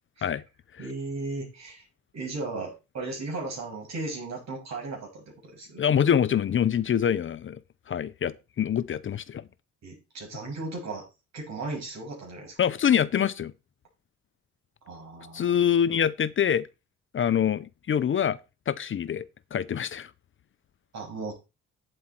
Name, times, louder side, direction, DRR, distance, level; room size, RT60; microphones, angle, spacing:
voice 1, 0.8-1.9 2.1-5.8 9.8-11.1 11.3-12.6 14.8-15.6 20.9-21.3, right 3 dB, 60° right, 6.8 m, -36 dB
voice 2, 5.8-7.6 7.9-9.5 12.6-13.5 15.3-16.7 17.1-18.4 18.7-19.2 19.5-20.1, left 8 dB, 40° left, 0.6 m, -25 dB
8.8 x 7.9 x 4.5 m
cardioid pair, 90°, 30 cm